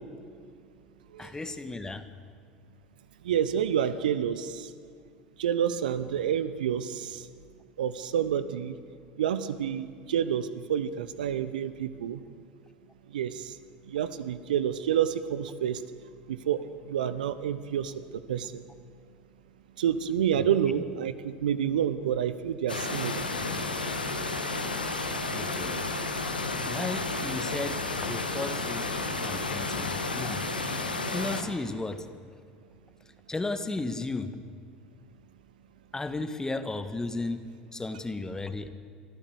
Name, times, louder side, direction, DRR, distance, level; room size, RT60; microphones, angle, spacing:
voice 1, 1.2-2.1 20.3-20.4 25.3-25.8 26.6-28.9 29.2-30.5 31.1-32.1 33.3-34.4 35.9-38.7, left 2 dB, 15° left, 10 dB, 1.5 m, -34 dB
voice 2, 3.2-4.7 5.4-7.2 7.8-8.7 9.2-12.2 13.1-13.5 13.9-15.8 16.3-17.9 18.3-18.6 19.8-23.3, right 9 dB, 70° right, 14 dB, 0.9 m, -28 dB
sound 1, 22.7-31.4, left 3 dB, 85° left, 1.6 m, -32 dB
24.0 x 14.0 x 8.0 m, 2.3 s
figure-of-eight pair, 70°, 5 cm